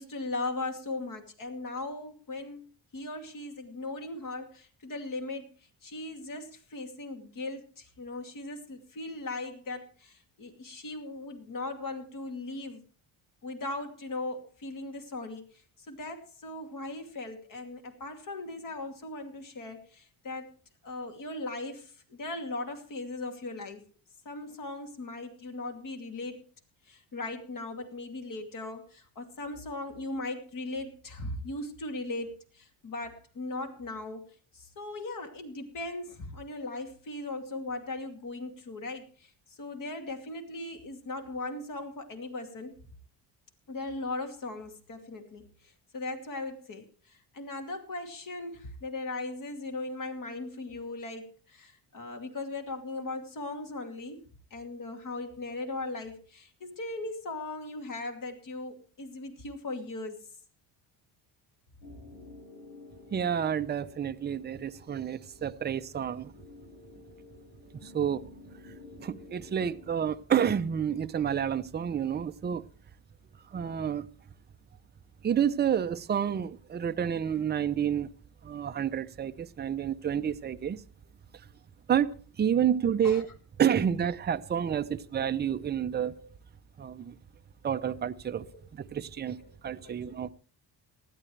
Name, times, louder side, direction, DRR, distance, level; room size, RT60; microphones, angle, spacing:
voice 1, 0.0-2.6 2.9-5.5 5.8-12.8 13.4-20.5 20.8-23.9 24.2-26.4 26.9-34.3 34.5-39.3 39.6-42.7 43.7-54.2 54.5-60.3 83.0-83.2 84.9-85.0 86.1-86.3 87.8-88.0 88.5-88.6 89.4-89.5 89.8-90.2, left 2 dB, 50° left, 2.7 m, -38 dB
sound 1, 61.8-70.0, left 3 dB, 85° left, 7.6 m, -52 dB
voice 2, 63.1-66.3 67.8-68.2 69.0-72.6 73.5-74.1 75.2-78.1 78.4-80.8 81.9-83.3 83.6-86.1 86.8-87.1 87.6-89.4 89.6-90.3, right 8 dB, 25° right, 0.6 m, -29 dB
19.0 x 13.0 x 3.3 m
cardioid pair, 130°, 43 cm